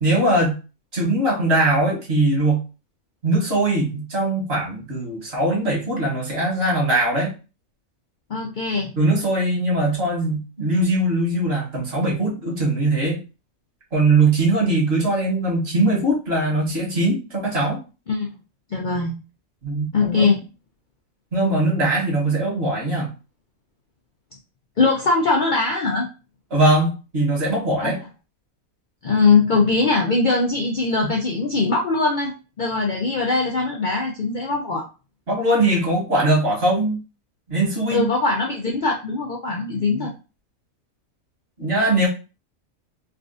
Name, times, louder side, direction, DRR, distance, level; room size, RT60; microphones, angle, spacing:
voice 1, 0.0-0.6 0.9-2.6 3.2-7.3 9.0-13.2 13.9-17.8 19.6-20.3 21.3-23.1 26.5-28.0 35.3-37.0 37.5-38.1 39.7-40.1 41.6-42.1, right 2 dB, 50° right, -3 dB, 1.4 m, -21 dB
voice 2, 8.3-8.9 18.1-18.3 18.7-19.1 19.9-20.4 24.8-26.1 27.8-27.9 29.0-34.8 37.9-40.1, left 3 dB, 90° left, -1 dB, 0.4 m, -21 dB
3.5 x 2.4 x 2.5 m, 0.32 s
omnidirectional pair, 1.5 m